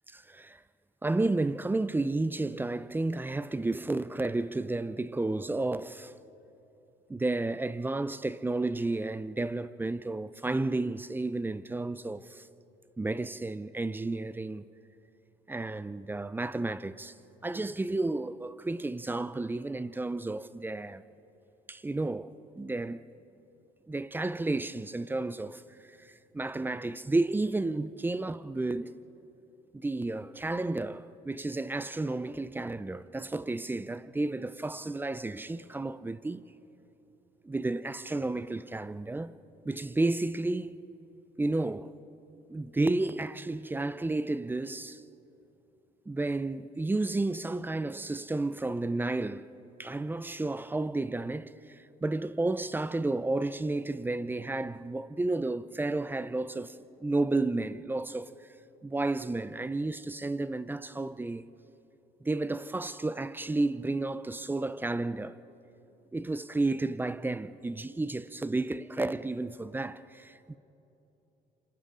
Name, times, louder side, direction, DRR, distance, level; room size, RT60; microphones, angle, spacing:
voice 1, 0.1-0.6 1.0-6.1 7.1-12.4 13.0-14.6 15.5-17.1 17.4-21.0 21.7-23.0 23.9-25.6 26.3-28.9 29.7-36.4 37.4-39.3 39.7-40.8 41.4-41.9 42.5-45.0 46.1-49.5 49.8-56.8 57.0-58.3 58.8-61.4 62.2-65.4 66.1-70.6, right 2 dB, 10° right, 0.5 m, -32 dB
27.5 x 25.0 x 3.8 m
cardioid pair, 110°, 17 cm